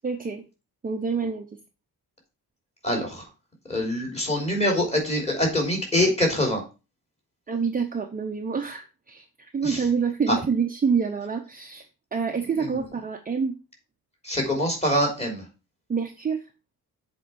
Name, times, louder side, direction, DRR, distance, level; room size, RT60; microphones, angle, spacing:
voice 1, 0.0-0.4 0.8-1.5 7.5-11.9 12.1-13.6 15.9-16.5, right 5 dB, 20° right, 3 dB, 0.8 m, -27 dB
voice 2, 2.8-3.2 3.7-6.6 9.6-9.8 10.3-10.4 12.6-12.8 14.2-15.4, left 1 dB, 15° left, 0 dB, 3.6 m, -24 dB
7.7 x 4.5 x 7.1 m, 0.29 s
wide cardioid pair, 175°, 39 cm